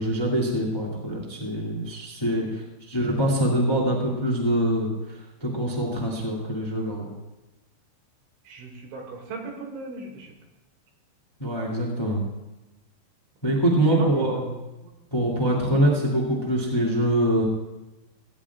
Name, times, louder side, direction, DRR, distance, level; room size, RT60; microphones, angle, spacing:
voice 1, 0.0-4.9 5.4-7.1 11.4-12.2 13.4-14.4 15.1-17.4, right 1 dB, 10° left, -2 dB, 1.2 m, -24 dB
voice 2, 2.3-2.6 8.4-10.3 11.8-11.9 13.9-14.4 14.8-14.9 15.6-15.7, right 3 dB, 80° right, 1 dB, 4.6 m, -38 dB
17.5 x 17.5 x 2.4 m, 1.0 s
omnidirectional pair, 5.3 m